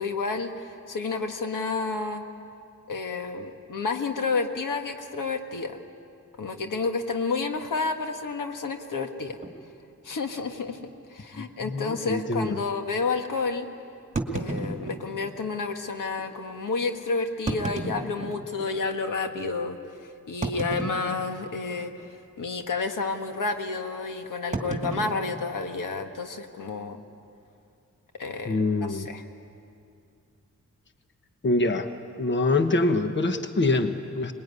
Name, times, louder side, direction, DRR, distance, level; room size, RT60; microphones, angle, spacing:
voice 1, 0.0-2.2 2.9-5.8 6.4-9.4 10.0-10.8 11.1-13.7 14.3-27.0 28.2-29.2, left 4 dB, 85° left, 5 dB, 1.7 m, -30 dB
sound 1, 9.4-9.6 10.3-10.5 10.8-10.9 11.5-11.6 14.1-15.4 16.2-16.3 17.3-18.7 19.3-19.4 20.4-21.5 21.8-22.1 22.4-22.7 24.5-26.1, right 2 dB, 25° right, 2.2 m, -33 dB
voice 2, 11.4-12.6 28.5-29.1 31.4-31.9 32.2-34.3, left 2 dB, 35° left, 7 dB, 1.2 m, -25 dB
24.5 x 21.0 x 9.7 m, 2.5 s
wide cardioid pair, 130°, 31 cm